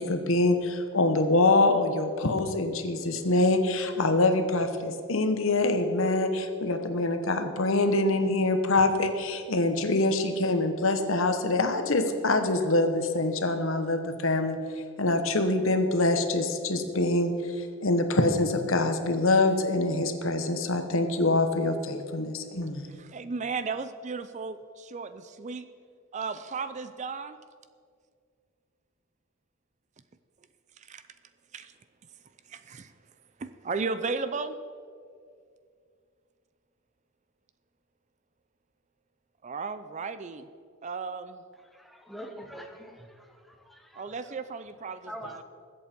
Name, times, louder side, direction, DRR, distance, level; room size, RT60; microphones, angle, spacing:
voice 1, 0.0-14.6 15.0-22.9, left 2 dB, 65° left, 7 dB, 1.1 m, -25 dB
voice 2, 22.9-25.7 26.1-27.4 30.8-31.0 31.5-31.7 32.5-32.9 33.4-34.6 39.4-40.5 40.8-41.4 44.0-45.4, right 4 dB, 30° right, 12 dB, 0.4 m, -35 dB
voice 3, 41.8-42.9 43.7-44.0 45.1-45.4, equal, ahead, 3 dB, 0.9 m, -42 dB
21.0 x 8.3 x 4.5 m, 2.2 s
head